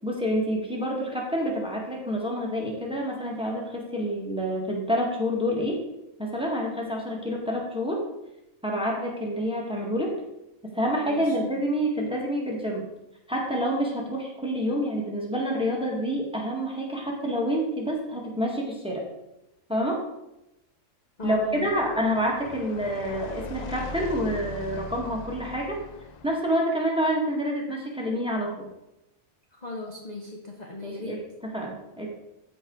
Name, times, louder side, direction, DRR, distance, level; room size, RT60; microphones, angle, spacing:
voice 1, 0.0-5.8 6.2-8.0 8.6-10.2 10.7-12.9 13.3-19.0 19.7-20.0 21.2-25.8 26.2-28.6 30.8-32.1, equal, 5° right, -2 dB, 1.7 m, -28 dB
voice 2, 11.1-11.6 21.2-21.7 29.5-31.3, left 3 dB, 35° left, 0 dB, 1.0 m, -38 dB
sound 1, 21.2-26.4, left 3 dB, 60° left, 0.4 m, -40 dB
13.0 x 4.9 x 4.0 m, 0.90 s
omnidirectional pair, 1.5 m